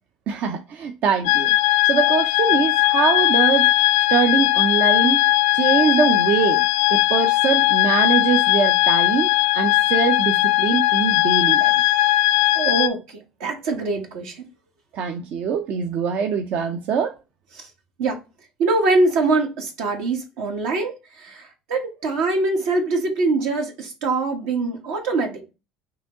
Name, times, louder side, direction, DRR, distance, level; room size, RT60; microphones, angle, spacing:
voice 1, 0.3-3.7 4.1-5.2 5.5-6.6 6.9-11.7 14.9-17.1, right 6 dB, 60° right, 0.5 m, -23 dB
sound 1, 1.2-12.9, left 18 dB, 80° left, 0.3 m, -18 dB
voice 2, 12.5-14.4 17.5-17.7 18.0-18.2 18.6-25.4, right 3 dB, 80° right, 1.4 m, -23 dB
4.9 x 2.9 x 3.6 m
supercardioid pair, 85°, 3 cm